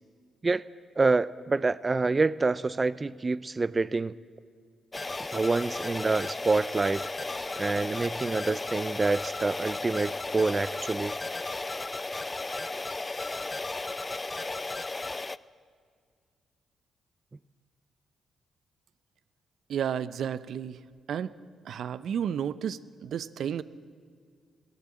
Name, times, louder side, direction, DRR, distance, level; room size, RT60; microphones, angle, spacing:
voice 1, 1.0-4.1 5.3-7.0 7.6-11.2, right 3 dB, 30° right, 17 dB, 0.6 m, -27 dB
sound 1, 4.9-15.4, left 3 dB, 25° left, 0.6 m, -34 dB
voice 2, 19.7-20.8 21.1-21.3 21.6-23.6, right 8 dB, 75° right, 16 dB, 0.7 m, -32 dB
21.0 x 17.0 x 8.6 m, 2.1 s
cardioid pair, 70°, 0 cm